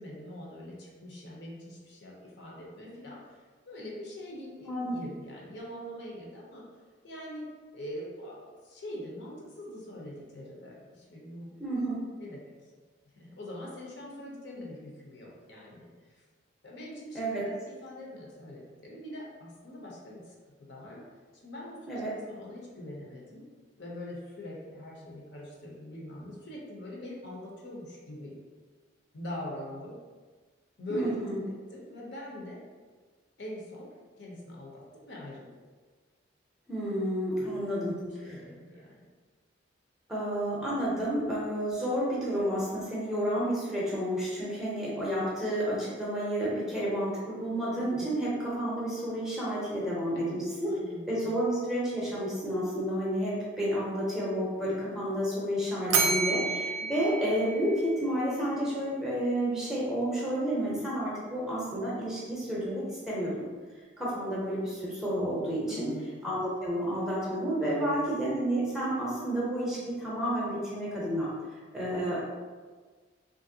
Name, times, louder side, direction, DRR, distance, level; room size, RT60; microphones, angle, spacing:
voice 1, 0.0-6.6 7.0-7.5 7.7-11.6 12.1-12.4 13.2-16.2 16.6-20.3 20.7-21.0 21.4-22.0 22.3-23.4 23.8-28.4 29.1-30.0 30.8-31.1 31.5-32.6 33.4-33.9 34.2-35.5 37.4-37.6 37.9-39.0 47.9-48.2 50.1-51.4 65.7-66.1 67.6-68.1, left 1 dB, 60° left, -3 dB, 0.6 m, -43 dB
voice 2, 4.7-5.0 11.6-12.0 17.1-17.4 21.9-22.1 30.9-31.4 36.7-38.3 40.1-50.7 51.1-63.5 64.0-65.9 66.2-71.3 71.7-72.2, equal, ahead, -7 dB, 0.6 m, -30 dB
Bell, 55.9-58.2, right 4 dB, 70° right, 0.4 m, -30 dB
3.1 x 2.5 x 2.6 m, 1.4 s
head